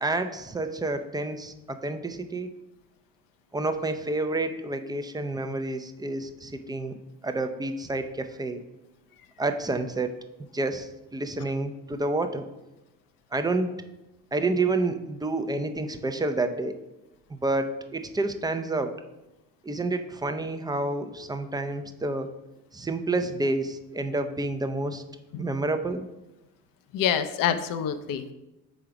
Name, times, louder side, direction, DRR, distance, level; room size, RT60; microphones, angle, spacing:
voice 1, 0.0-2.5 3.5-7.0 7.2-8.6 9.4-10.1 10.5-12.5 13.3-13.7 14.3-16.8 17.3-18.9 19.6-22.3 22.7-25.0 25.4-26.1, right 2 dB, 10° right, 7 dB, 0.5 m, -29 dB
voice 2, 26.9-28.3, left 8 dB, 50° left, 10 dB, 0.6 m, -26 dB
5.1 x 3.7 x 5.8 m, 0.97 s
supercardioid pair, 70°, 42 cm